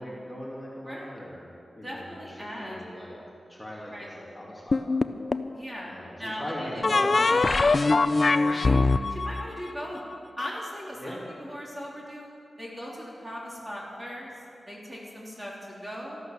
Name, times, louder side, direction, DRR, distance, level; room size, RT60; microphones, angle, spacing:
voice 1, 0.0-3.2 3.5-4.8 5.9-8.2 11.0-11.2, equal, 5° left, -6 dB, 2.8 m, -39 dB
voice 2, 0.8-1.2 1.8-2.8 3.9-4.1 5.5-8.1 8.4-8.8 9.1-10.0 10.4-12.3 12.6-14.3 14.7-16.2, equal, 20° right, -4 dB, 3.4 m, -39 dB
sound 1, 4.7-5.5 6.8-10.5, left 3 dB, 45° left, 0.5 m, -23 dB
13.5 x 12.0 x 7.3 m, 2.5 s
wide cardioid pair, 105°, 0 cm